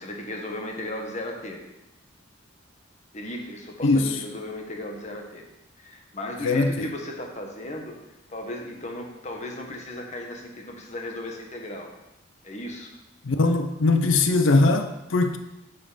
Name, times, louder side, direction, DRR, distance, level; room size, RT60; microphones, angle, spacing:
voice 1, 0.0-1.6 3.1-5.4 5.8-7.9 8.3-11.9 12.4-12.9, left 1 dB, 35° left, 1 dB, 1.4 m, -36 dB
voice 2, 6.4-6.9 13.2-15.4, left 3 dB, 75° left, 8 dB, 0.6 m, -21 dB
9.2 x 5.5 x 5.1 m, 0.94 s
head